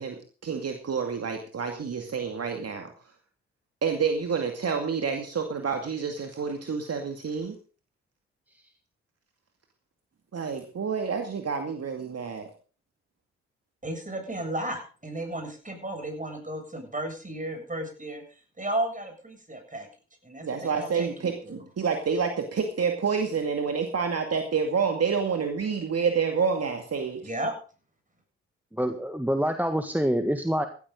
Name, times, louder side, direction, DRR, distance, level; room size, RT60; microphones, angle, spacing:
voice 1, 0.0-2.9 3.8-7.6 10.3-12.5 20.4-27.2, right 6 dB, 50° right, 4 dB, 2.3 m, -28 dB
voice 2, 13.8-18.2 18.6-19.9 20.2-21.7 27.2-27.5, right 1 dB, 25° right, 5 dB, 7.6 m, -34 dB
voice 3, 28.7-30.7, equal, 5° right, 7 dB, 1.7 m, -26 dB
16.0 x 13.5 x 3.9 m, 0.38 s
hypercardioid pair, 40°, 33 cm